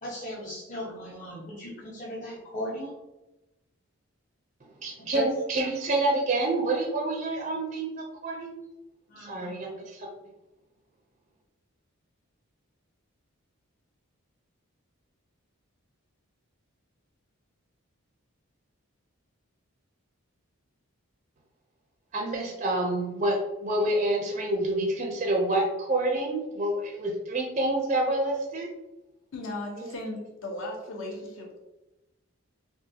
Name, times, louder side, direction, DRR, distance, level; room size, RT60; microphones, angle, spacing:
voice 1, 0.0-2.9 5.0-5.3 9.1-9.7, left 1 dB, 35° left, -8 dB, 1.0 m, -37 dB
voice 2, 4.8-8.6 9.2-10.1 22.1-28.7 29.8-29.9, right 2 dB, 30° right, 1 dB, 0.4 m, -28 dB
voice 3, 29.3-31.6, left 1 dB, 60° left, 0 dB, 0.8 m, -36 dB
3.8 x 2.3 x 2.7 m, 0.98 s
head